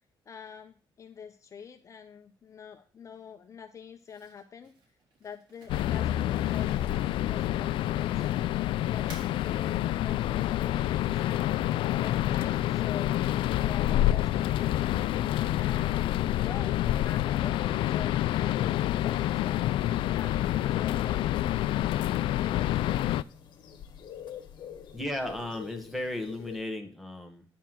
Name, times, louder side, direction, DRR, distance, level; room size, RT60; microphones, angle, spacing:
voice 1, 0.3-4.7 5.2-6.7 7.2-13.2 13.6-15.3 15.6-16.8 17.0-21.8 22.4-23.1, left 7 dB, 40° left, 6 dB, 0.8 m, -46 dB
Crumpling crinkling, 4.0-8.6 8.9-9.3, right 3 dB, 70° right, 3.8 m, -53 dB
sound 1, 5.7-23.2, left 13 dB, 85° left, 0.3 m, -27 dB
sound 2, 19.9-26.6, left 8 dB, 65° left, 1.4 m, -48 dB
voice 2, 24.9-27.4, left 1 dB, ahead, 4 dB, 1.5 m, -35 dB
9.3 x 4.5 x 7.5 m, 0.39 s
cardioid pair, 135°, 9 cm